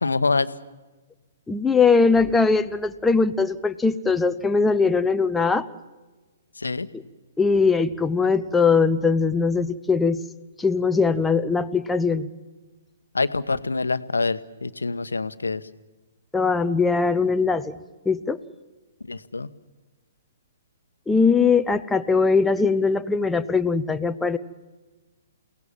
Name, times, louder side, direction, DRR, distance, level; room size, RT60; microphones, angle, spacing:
voice 1, 0.0-0.5 6.6-6.9 13.1-15.6 19.0-19.5, left 3 dB, 75° left, 14 dB, 1.1 m, -25 dB
voice 2, 1.5-5.7 7.4-10.2 10.6-12.3 16.3-17.7 18.1-18.4 21.1-24.4, left 4 dB, 5° left, 9 dB, 0.8 m, -21 dB
29.0 x 18.5 x 7.3 m, 1.2 s
figure-of-eight pair, 120°, 0 cm